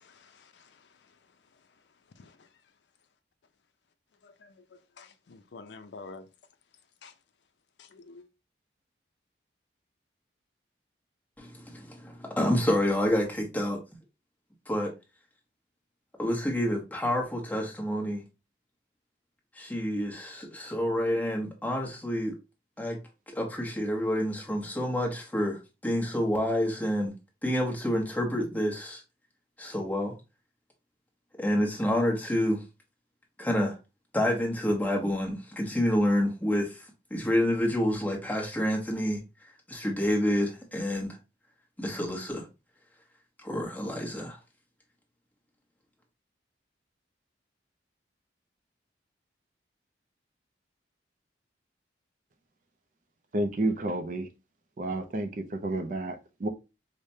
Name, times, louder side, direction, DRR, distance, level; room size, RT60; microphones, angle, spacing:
voice 1, 5.0-6.2 7.0-7.1 7.9-8.3, left 3 dB, 75° left, 0.4 m, -47 dB
voice 2, 11.4-13.8 14.7-14.9 16.2-18.2 19.6-22.3 22.8-23.0 23.3-27.1 27.4-29.0 29.6-30.1 31.4-32.6 33.4-33.8 34.1-36.8 37.1-39.2 39.7-41.2 41.8-42.4 43.4-44.4, equal, 10° left, 0.9 m, -28 dB
voice 3, 53.3-54.3 54.8-56.5, right 2 dB, 45° right, 0.4 m, -30 dB
4.8 x 2.1 x 2.7 m
head